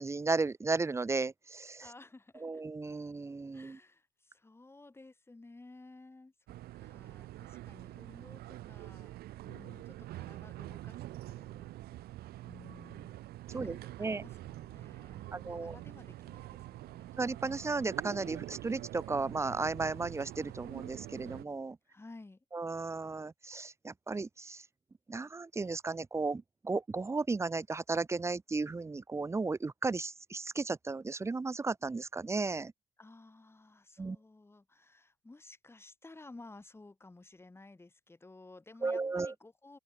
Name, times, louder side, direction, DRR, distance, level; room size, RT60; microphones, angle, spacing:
voice 1, 0.0-1.8 2.4-3.8 13.5-14.2 15.3-15.8 17.2-21.8 22.5-24.6 25.1-32.7 34.0-34.2 38.8-39.3, right 3 dB, 15° right, 0.6 m, -34 dB
voice 2, 1.8-2.6 3.5-6.3 6.8-9.1 9.4-13.2 13.5-17.2 21.9-22.4 33.0-39.8, left 2 dB, 15° left, 4.8 m, -55 dB
sound 1, 6.5-21.4, right 15 dB, 65° right, 0.6 m, -46 dB
cardioid pair, 110°, 17 cm